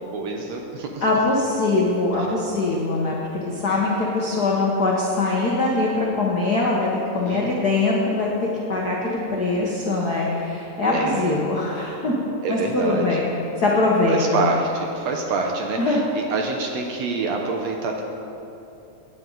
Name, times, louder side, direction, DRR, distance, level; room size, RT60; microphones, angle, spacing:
voice 1, 0.1-1.0 2.2-2.3 7.2-7.7 10.9-11.4 12.4-13.2 14.1-18.0, right 3 dB, 70° right, 1 dB, 1.8 m, -27 dB
voice 2, 1.0-6.9 7.1-12.1 12.5-13.3 13.6-14.4 15.8-16.0, left 2 dB, 75° left, -4 dB, 0.9 m, -22 dB
16.5 x 9.4 x 4.0 m, 2.9 s
omnidirectional pair, 3.8 m